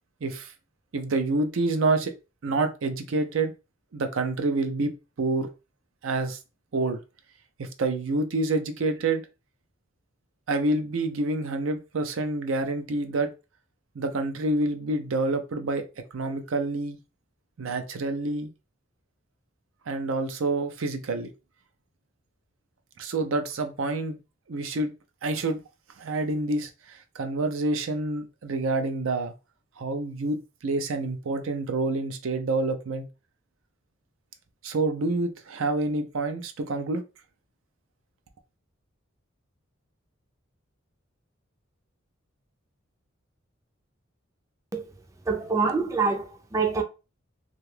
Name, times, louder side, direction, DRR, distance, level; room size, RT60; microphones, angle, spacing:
voice 1, 0.2-0.5 0.9-2.1 2.4-3.5 3.9-5.5 6.0-6.4 6.7-7.0 7.6-9.2 10.5-13.3 13.9-15.8 16.1-17.0 17.6-18.5 19.9-21.3 23.0-24.2 24.5-24.9 25.2-25.6 26.0-29.3 29.8-33.1 34.6-37.0, right 2 dB, 90° right, 0.5 m, -27 dB
voice 2, 45.3-46.8, right 4 dB, 15° right, 0.4 m, -25 dB
2.7 x 2.4 x 3.2 m
head